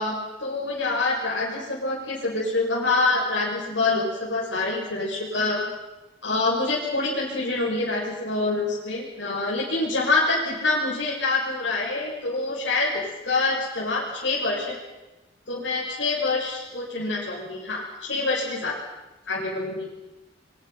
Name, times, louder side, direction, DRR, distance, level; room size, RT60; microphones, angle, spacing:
voice 1, 0.0-5.7 6.2-14.8 15.5-18.7 19.3-19.9, left 3 dB, 90° left, -5 dB, 6.8 m, -26 dB
27.5 x 24.5 x 5.9 m, 1.1 s
head